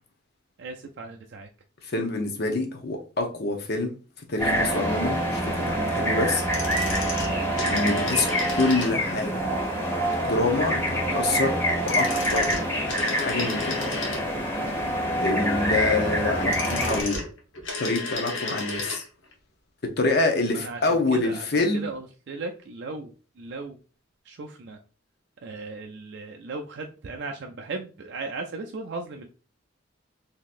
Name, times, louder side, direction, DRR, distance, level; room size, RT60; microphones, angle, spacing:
voice 1, 0.6-1.5 7.3-7.8 20.5-20.8 21.1-23.8 24.3-24.8 25.4-29.3, right 3 dB, 55° right, 2 dB, 0.4 m, -37 dB
voice 2, 1.9-4.0 4.3-6.4 7.6-9.4 10.2-11.6 11.8-12.5 13.1-13.8 15.2-17.2 17.8-19.0 20.0-21.9, left 2 dB, 55° left, 4 dB, 0.7 m, -26 dB
sound 1, 4.4-17.0, equal, 10° left, 1.3 m, -26 dB
sound 2, 6.4-9.2 11.6-14.6 16.2-19.1 19.3-19.4, left 3 dB, 75° left, 1.0 m, -33 dB
3.8 x 2.8 x 2.5 m, 0.35 s
head